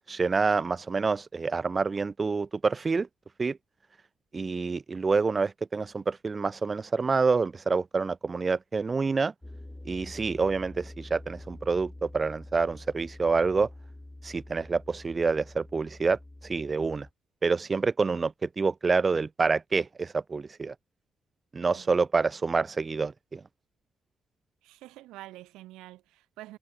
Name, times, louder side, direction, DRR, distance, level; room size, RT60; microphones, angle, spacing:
voice 1, 0.1-3.1 3.4-3.6 4.3-9.3 9.9-13.7 14.2-17.1 17.4-20.7 21.5-23.4, right 4 dB, 40° right, 0.8 m, -27 dB
sound 1, 9.4-17.1, left 1 dB, 15° left, 2.4 m, -46 dB
voice 2, 24.6-26.6, right 17 dB, 80° right, 5.1 m, -47 dB
hypercardioid pair, 45°, 0 cm